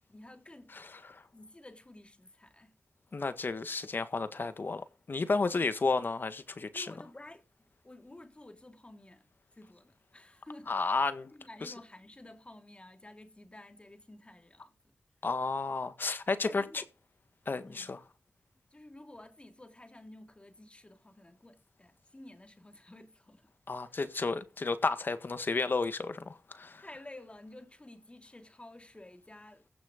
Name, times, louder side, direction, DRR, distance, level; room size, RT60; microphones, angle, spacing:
voice 1, 0.1-0.7 1.3-2.7 6.7-7.4 7.8-9.2 9.6-10.7 11.3-14.7 16.4-16.9 17.7-18.0 18.7-23.5 26.8-29.7, left 1 dB, 30° left, 2.7 m, -52 dB
voice 2, 0.7-1.2 3.1-7.0 10.7-11.3 11.6-11.7 15.2-16.8 17.4-18.0 23.7-26.9, left 3 dB, 55° left, 1.6 m, -32 dB
15.5 x 6.2 x 5.1 m
cardioid pair, 50°, 4 cm